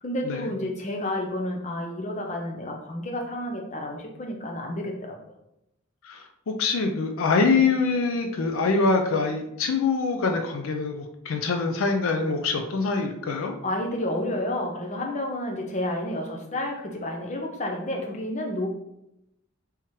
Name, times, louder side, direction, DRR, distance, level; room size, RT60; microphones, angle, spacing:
voice 1, 0.0-5.2 13.6-18.7, left 1 dB, 35° left, 1 dB, 0.6 m, -30 dB
voice 2, 6.0-13.6, left 4 dB, 75° left, 4 dB, 0.4 m, -24 dB
4.4 x 3.5 x 3.0 m, 0.83 s
head